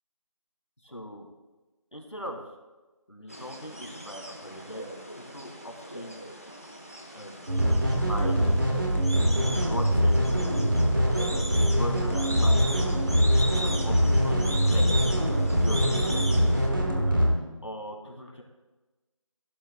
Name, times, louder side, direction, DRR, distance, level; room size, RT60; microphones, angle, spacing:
voice 1, 0.8-1.3 1.9-2.4 3.1-5.0 5.3-6.3 7.1-7.5 7.8-8.6 9.5-10.3 11.6-12.8 13.5-15.1 15.6-16.6 17.1-17.3 17.6-18.4, equal, 60° left, 2 dB, 2.0 m, -39 dB
sound 1, 3.3-16.7, right 1 dB, 25° left, 0.8 m, -39 dB
sound 2, 7.5-17.3, equal, 40° right, 1.4 m, -23 dB
16.0 x 12.0 x 2.2 m, 1.2 s
figure-of-eight pair, 175°, 17 cm